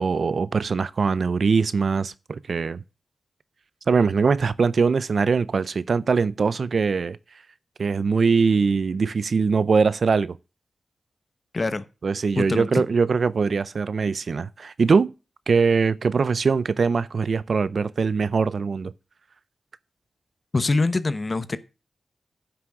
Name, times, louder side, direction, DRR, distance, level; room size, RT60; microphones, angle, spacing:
voice 1, 0.0-2.8 3.9-7.2 7.8-10.4 12.0-15.1 15.5-18.9, right 5 dB, 65° right, 0.5 m, -22 dB
voice 2, 11.5-11.8 12.4-12.8 20.5-21.6, left 3 dB, 40° left, 0.9 m, -24 dB
9.8 x 6.1 x 4.9 m
cardioid pair, 70°, 0 cm